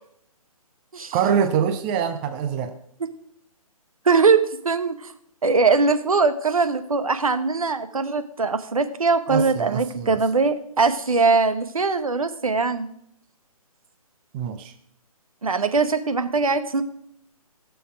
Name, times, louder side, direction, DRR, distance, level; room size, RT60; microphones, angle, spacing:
voice 1, 1.1-2.7 9.3-10.2 14.3-14.7, right 7 dB, 15° right, 8 dB, 0.5 m, -24 dB
voice 2, 4.0-5.1 5.4-12.9 15.4-16.8, right 4 dB, 70° right, 10 dB, 1.2 m, -21 dB
16.5 x 6.9 x 5.0 m, 0.71 s
figure-of-eight pair, 135°, 19 cm